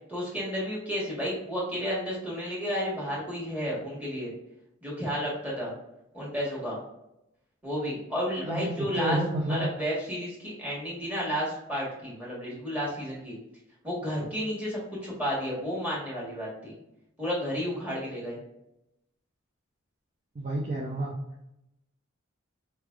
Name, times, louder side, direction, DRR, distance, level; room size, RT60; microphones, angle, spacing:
voice 1, 0.1-4.3 4.8-5.7 6.1-6.8 7.6-9.2 9.5-13.4 13.8-16.7 17.2-18.4, equal, 10° right, -5 dB, 1.3 m, -32 dB
voice 2, 8.4-9.7 20.4-21.1, right 1 dB, 35° right, -3 dB, 0.5 m, -30 dB
4.3 x 3.2 x 2.3 m, 0.85 s
head